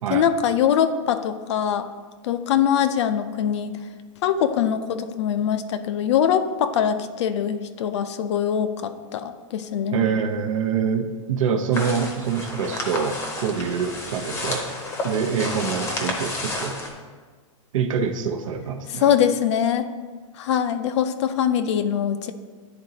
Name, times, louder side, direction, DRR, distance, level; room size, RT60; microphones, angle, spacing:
voice 1, 0.1-1.9 2.2-3.8 4.2-10.0 18.9-19.9 20.4-22.3, left 9 dB, 55° left, 10 dB, 0.5 m, -23 dB
voice 2, 9.9-14.7 15.0-16.8 17.7-19.1, right 6 dB, 75° right, 5 dB, 0.8 m, -25 dB
sound 1, 11.7-16.9, left 2 dB, 15° left, 0.7 m, -31 dB
10.5 x 3.9 x 2.8 m, 1.5 s
supercardioid pair, 160°, 17 cm